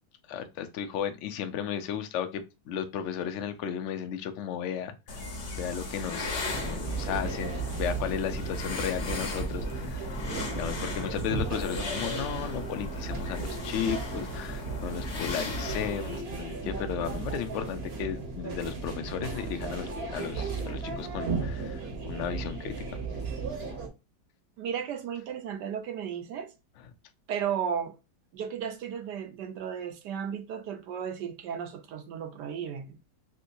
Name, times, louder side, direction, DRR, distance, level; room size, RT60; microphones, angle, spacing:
voice 1, 0.3-5.2 5.6-10.2 10.6-23.1, left 8 dB, 85° left, 0.6 m, -35 dB
sound 1, 5.1-16.2, left 2 dB, 45° left, 1.1 m, -37 dB
sound 2, 6.5-23.9, right 4 dB, 45° right, 1.0 m, -35 dB
voice 2, 24.6-26.5 27.3-27.9 28.3-33.0, right 8 dB, 75° right, 1.3 m, -34 dB
3.5 x 2.8 x 2.5 m
omnidirectional pair, 1.9 m